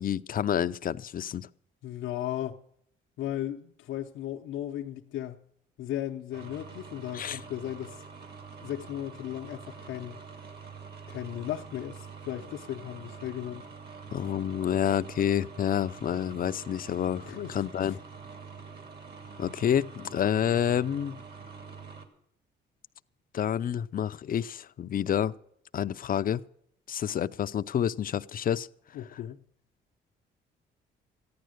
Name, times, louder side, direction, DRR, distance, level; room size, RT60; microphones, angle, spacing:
voice 1, 0.0-1.5 7.1-7.4 14.1-18.0 19.4-21.2 23.3-25.3 25.7-26.4 26.9-28.7 29.1-29.2, left 9 dB, 45° left, 0.5 m, -28 dB
voice 2, 1.8-2.6 3.2-5.4 5.8-8.0 8.6-10.2 11.1-13.7 17.3-18.0 28.9-29.4, left 12 dB, 80° left, 0.8 m, -36 dB
sound 1, 6.3-22.1, right 5 dB, 55° right, 2.5 m, -46 dB
14.5 x 10.5 x 6.5 m
cardioid pair, 90°, 20 cm